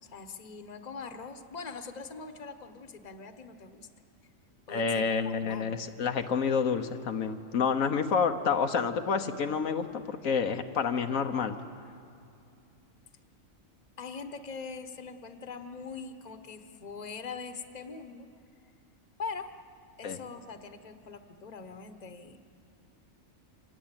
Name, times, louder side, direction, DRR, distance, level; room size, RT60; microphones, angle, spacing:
voice 1, 0.0-3.9 4.7-5.8 14.0-18.3 19.2-19.5 20.0-22.4, left 5 dB, 35° left, 7 dB, 1.2 m, -42 dB
voice 2, 4.7-11.6 20.0-20.2, left 6 dB, 85° left, 6 dB, 1.4 m, -29 dB
26.0 x 19.0 x 8.9 m, 2.6 s
omnidirectional pair, 1.4 m